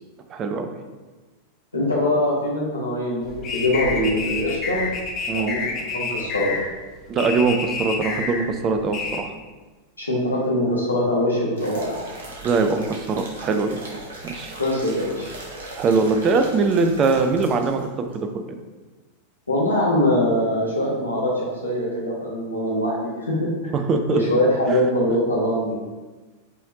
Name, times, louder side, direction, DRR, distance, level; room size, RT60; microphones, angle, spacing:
voice 1, 0.3-0.7 5.3-5.5 7.1-9.3 12.4-13.7 14.2-14.5 15.8-17.9 18.1-18.4 23.7-24.2 24.7-24.8, right 4 dB, 30° right, 6 dB, 0.4 m, -22 dB
voice 2, 1.7-4.8 5.3-5.6 5.9-6.5 10.0-12.0 14.6-15.3 19.5-23.7 24.1-25.7, left 1 dB, 80° left, -5 dB, 1.3 m, -23 dB
sound 1, 3.2-9.2, left 4 dB, 35° left, 0.7 m, -29 dB
sound 2, 11.6-17.8 18.1-18.2, right 2 dB, 65° right, 1.0 m, -39 dB
5.4 x 3.3 x 2.8 m, 1.3 s
figure-of-eight pair, 90°, 0 cm